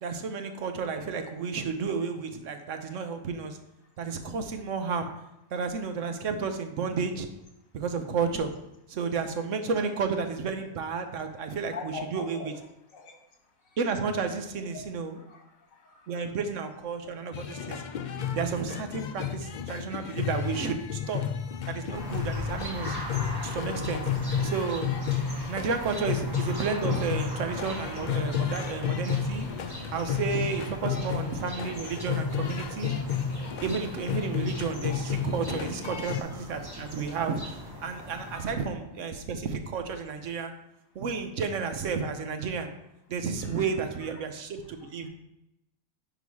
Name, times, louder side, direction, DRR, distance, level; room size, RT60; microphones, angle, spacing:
voice 1, 0.0-3.6 4.0-5.1 5.5-7.3 7.7-8.5 8.9-12.5 13.8-15.2 16.1-17.8 18.3-21.2 21.7-23.0 23.4-24.0 24.4-24.9 25.5-29.5 29.9-32.9 33.6-40.5 40.9-42.7 43.1-45.1, right 5 dB, 70° right, 7 dB, 1.2 m, -32 dB
voice 2, 11.7-12.5 12.9-13.2 15.1-15.5 15.8-16.1 30.8-30.9 33.4-33.5 38.3-38.5, left 5 dB, 85° left, 2 dB, 1.7 m, -41 dB
sound 1, 17.3-36.2, left 7 dB, 65° left, 0.4 m, -32 dB
sound 2, 21.9-38.5, left 1 dB, 20° right, 1.3 m, -39 dB
9.9 x 3.8 x 4.8 m, 0.87 s
omnidirectional pair, 1.4 m